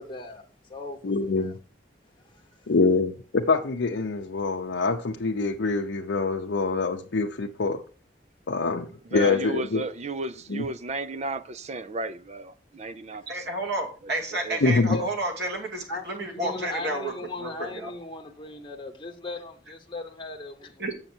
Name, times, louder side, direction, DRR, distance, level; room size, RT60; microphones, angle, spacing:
voice 1, 0.0-0.4 0.7-1.5 2.2-2.7 14.9-15.1 15.9-16.1 16.3-20.8, left 2 dB, 25° left, 0.9 m, -38 dB
voice 2, 1.0-1.5 2.7-7.8 8.5-9.8 10.5-10.7 14.6-15.0, left 3 dB, 80° left, 0.6 m, -25 dB
voice 3, 9.1-13.5 14.3-14.6, right 2 dB, 35° right, 0.5 m, -34 dB
voice 4, 13.3-17.9 20.8-20.9, right 1 dB, 65° right, 2.3 m, -31 dB
7.4 x 6.6 x 4.4 m
head